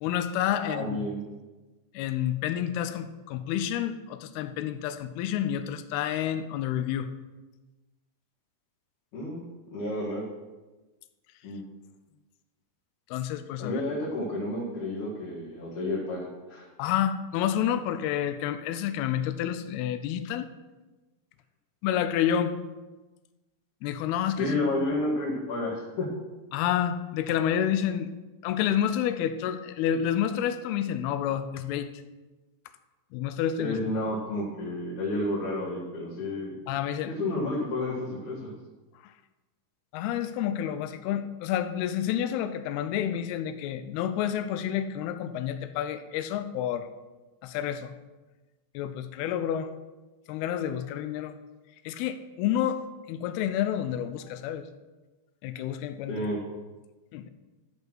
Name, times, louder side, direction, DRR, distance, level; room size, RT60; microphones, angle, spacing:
voice 1, 0.0-1.1 1.9-7.1 13.1-13.8 16.8-20.5 21.8-22.5 23.8-24.6 26.5-28.1 28.4-31.9 33.1-33.9 36.7-37.1 39.9-46.9 47.4-48.0 48.7-49.7 50.3-51.4 51.9-52.8 53.1-54.7 55.4-56.3 57.1-57.3, left 10 dB, 80° left, 10 dB, 2.6 m, -29 dB
voice 2, 0.5-1.2 9.1-9.4 9.7-10.2 11.4-11.6 13.6-16.7 24.4-26.1 33.6-36.5 37.1-38.5 56.1-56.4, left 1 dB, 55° left, -8 dB, 3.0 m, -31 dB
13.5 x 5.4 x 6.2 m, 1.2 s
omnidirectional pair, 4.7 m